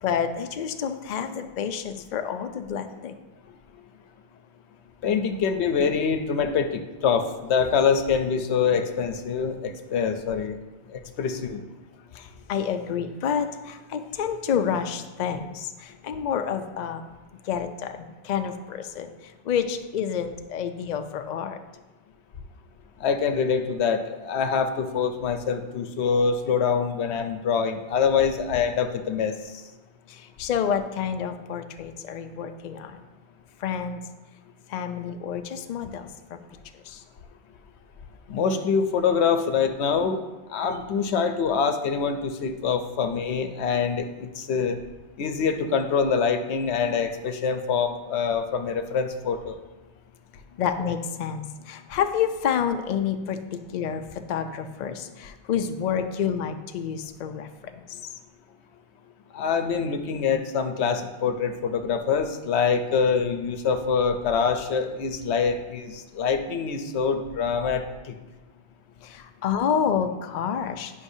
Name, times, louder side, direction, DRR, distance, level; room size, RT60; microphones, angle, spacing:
voice 1, 0.0-3.1 12.1-17.1 17.5-19.1 19.5-21.6 30.4-33.0 33.6-34.0 34.7-36.4 36.9-37.0 50.6-54.0 54.3-57.5 69.0-70.9, left 8 dB, 55° left, 7 dB, 0.5 m, -29 dB
voice 2, 5.0-10.6 10.9-11.6 23.0-29.3 38.3-40.2 40.5-44.8 45.2-49.6 59.3-68.2, left 6 dB, 85° left, 7 dB, 0.9 m, -25 dB
9.8 x 5.4 x 2.7 m, 1.2 s
omnidirectional pair, 1.1 m